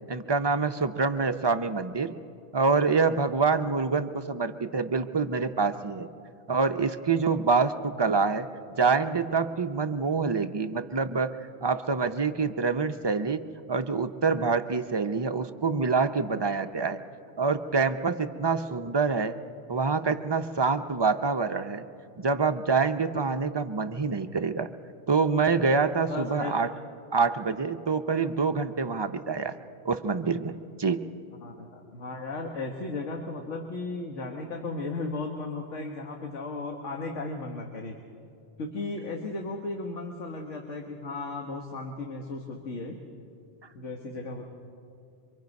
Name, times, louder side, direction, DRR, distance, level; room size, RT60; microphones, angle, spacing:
voice 1, 0.1-2.1 2.5-6.1 6.5-8.5 8.8-11.3 11.6-13.4 13.7-17.0 17.4-19.4 19.7-21.8 22.2-24.7 25.1-26.7 27.1-29.5 29.8-30.5 30.8-31.0, right 4 dB, 35° right, 8 dB, 0.4 m, -26 dB
voice 2, 26.1-26.5 31.4-37.9 38.6-43.0 43.7-44.5, left 3 dB, 85° left, 2 dB, 1.6 m, -35 dB
25.5 x 23.5 x 5.3 m, 2.5 s
omnidirectional pair, 1.2 m